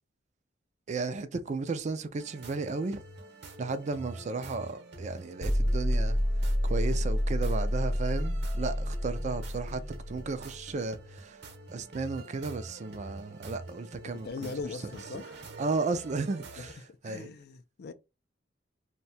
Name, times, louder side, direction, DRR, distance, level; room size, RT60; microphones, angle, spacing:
voice 1, 0.9-3.0 3.6-6.2 6.6-11.4 11.7-14.3 15.6-16.7 17.0-17.3, right 3 dB, 40° right, 0.4 m, -34 dB
sound 1, 2.2-16.7, right 2 dB, 65° right, 0.9 m, -47 dB
sound 2, 5.4-10.4, equal, 25° left, 0.7 m, -29 dB
voice 2, 14.0-15.5 16.6-17.9, left 4 dB, 60° left, 0.4 m, -41 dB
2.7 x 2.2 x 4.1 m
head